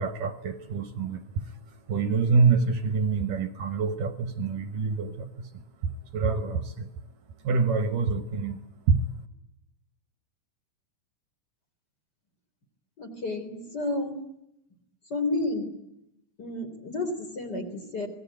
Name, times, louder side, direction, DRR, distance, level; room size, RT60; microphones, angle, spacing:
voice 1, 0.0-9.3, right 4 dB, 65° right, 2.5 m, -27 dB
voice 2, 13.0-14.2 15.1-15.7 16.4-18.1, left 2 dB, 25° left, 3.8 m, -31 dB
26.0 x 20.5 x 9.2 m
omnidirectional pair, 4.5 m